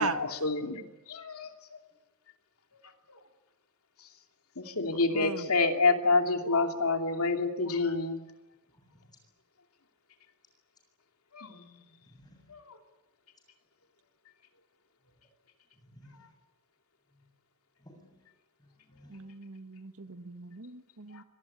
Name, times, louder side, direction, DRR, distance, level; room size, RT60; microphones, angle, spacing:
voice 1, 0.0-1.8 4.6-8.2 11.3-11.8 12.5-12.8, left 3 dB, 80° left, 5 dB, 2.8 m, -28 dB
voice 2, 4.9-5.5 19.1-21.2, right 4 dB, 75° right, 11 dB, 1.4 m, -37 dB
voice 3, 8.7-9.2 12.1-12.5 15.8-16.3 17.8-18.2 18.6-19.2, equal, 20° left, 4 dB, 7.3 m, -57 dB
25.0 x 19.0 x 10.0 m, 1.0 s
head